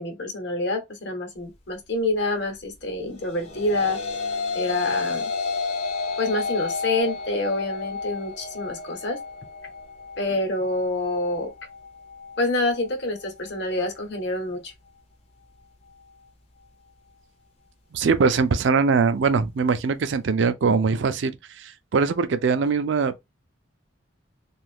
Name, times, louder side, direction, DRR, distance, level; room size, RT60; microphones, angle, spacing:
voice 1, 0.0-4.0 4.5-5.3 6.2-9.2 10.2-11.5 12.4-14.7, left 2 dB, 60° left, 1.0 m, -27 dB
sound 1, 3.2-12.4, left 4 dB, 30° left, 0.6 m, -31 dB
voice 2, 17.9-21.3 21.6-23.2, right 5 dB, 65° right, 0.4 m, -22 dB
2.6 x 2.4 x 3.4 m
head